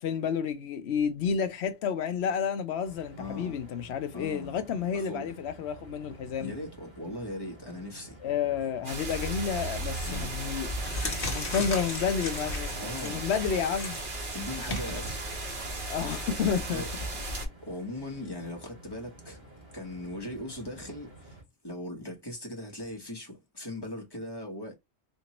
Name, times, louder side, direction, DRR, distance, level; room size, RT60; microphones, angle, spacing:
voice 1, 0.0-6.5 8.2-10.7 11.3-14.0 15.9-16.8, left 7 dB, 70° left, 0.9 m, -30 dB
sound 1, 2.8-21.4, right 2 dB, 30° right, 2.3 m, -51 dB
voice 2, 3.2-3.6 4.1-4.6 4.9-5.3 6.4-8.2 10.0-10.3 12.8-13.2 14.3-15.3 16.7-16.9 17.6-19.4 19.7-21.4 21.6-24.7, left 1 dB, 20° left, 1.2 m, -39 dB
sound 2, 8.8-17.5, right 2 dB, 50° right, 1.3 m, -36 dB
sound 3, 9.8-10.1 10.6-17.1, left 2 dB, 55° left, 1.3 m, -38 dB
4.4 x 2.6 x 2.9 m
omnidirectional pair, 1.2 m